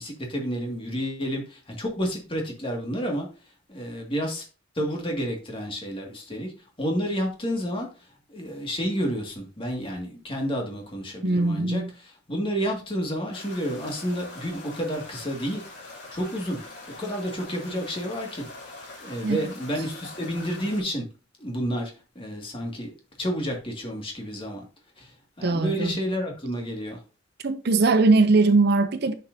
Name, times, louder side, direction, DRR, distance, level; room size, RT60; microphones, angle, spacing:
voice 1, 0.0-3.3 3.7-4.5 4.8-15.6 16.1-16.6 16.9-18.5 19.0-21.1 21.4-24.7 25.0-27.0, equal, 25° left, 2.0 m, -30 dB
voice 2, 11.2-11.9 19.2-19.4 25.4-25.9 27.4-29.1, right 3 dB, 55° right, 0.6 m, -20 dB
sound 1, 13.3-20.8, left 2 dB, 55° left, 3.2 m, -43 dB
10.0 x 5.8 x 2.7 m
head